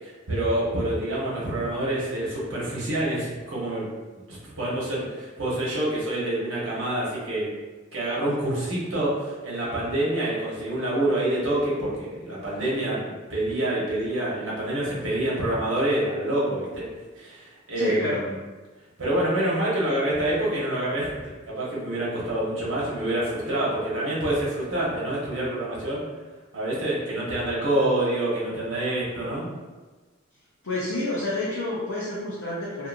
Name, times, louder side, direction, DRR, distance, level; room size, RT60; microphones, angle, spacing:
voice 1, 0.0-3.9 4.3-7.5 7.9-16.9 17.2-18.3 19.0-21.1 21.5-26.0 26.5-29.5, right 1 dB, 75° right, -6 dB, 1.0 m, -27 dB
voice 2, 17.8-18.2 30.6-32.9, left 2 dB, 75° left, -7 dB, 0.6 m, -29 dB
2.7 x 2.6 x 2.5 m, 1.3 s
head